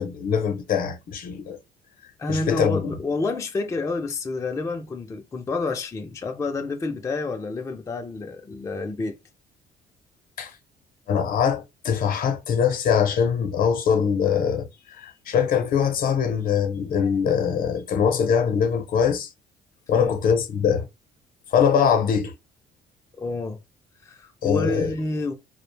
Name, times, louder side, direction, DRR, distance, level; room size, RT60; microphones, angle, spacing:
voice 1, 0.0-1.6 2.3-2.9 10.4-10.5 11.1-14.7 15.0-19.3 19.9-20.9 21.5-22.3 24.4-24.9, left 7 dB, 60° left, 0.7 m, -22 dB
voice 2, 2.2-9.2 19.9-20.2 23.1-23.6 24.0-25.3, left 3 dB, 20° left, 0.4 m, -29 dB
2.4 x 2.0 x 3.2 m
cardioid pair, 110°, 17 cm